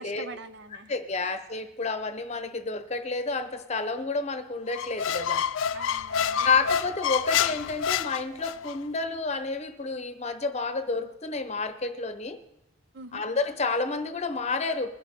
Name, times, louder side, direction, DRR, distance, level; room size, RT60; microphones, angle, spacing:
voice 1, 0.0-0.9 1.2-1.3 5.7-6.5 12.9-13.2, right 3 dB, 55° right, 0.7 m, -44 dB
voice 2, 0.9-5.4 6.4-12.4 13.1-14.9, left 4 dB, 30° left, 0.8 m, -30 dB
Squeak, 4.7-8.8, left 8 dB, 75° left, 0.4 m, -28 dB
21.5 x 9.8 x 3.7 m
head